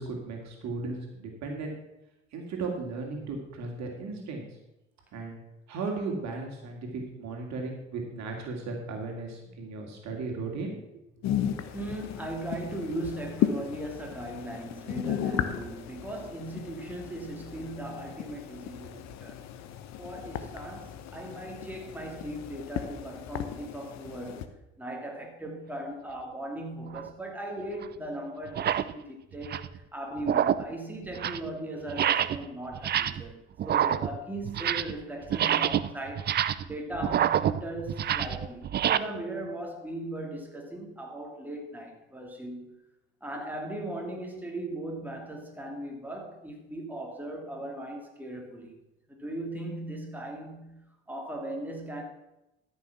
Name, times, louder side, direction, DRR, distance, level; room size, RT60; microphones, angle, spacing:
voice 1, 0.0-1.7 2.3-4.5 5.1-5.4 5.7-10.8, right 3 dB, 50° right, 1 dB, 2.6 m, -36 dB
sound 1, 11.2-24.5, left 10 dB, 50° left, 1.0 m, -35 dB
voice 2, 11.7-19.4 20.0-24.5 24.8-33.4 33.7-42.8 43.2-48.8 49.1-52.0, right 1 dB, 5° right, 0 dB, 2.7 m, -38 dB
sound 2, 26.9-27.1 27.8-27.9 28.5-28.9 29.3-29.8 30.2-30.7 31.0-31.5 31.9-32.4 32.7-33.3 33.6-35.0 35.3-39.0, right 10 dB, 30° right, 0.5 m, -27 dB
13.0 x 6.3 x 5.9 m, 0.91 s
figure-of-eight pair, 55°, 35 cm